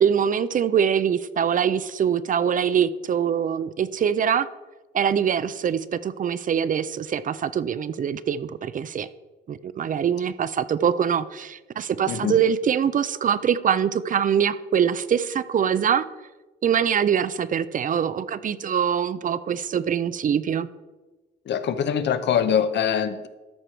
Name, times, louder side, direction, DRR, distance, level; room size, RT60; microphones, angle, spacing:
voice 1, 0.0-4.5 4.9-9.1 9.5-16.1 16.6-20.7, right 8 dB, 40° right, 15 dB, 0.4 m, -23 dB
voice 2, 21.5-23.3, left 8 dB, 60° left, 12 dB, 0.7 m, -23 dB
13.0 x 4.8 x 4.4 m, 1.2 s
cardioid pair, 90°, 20 cm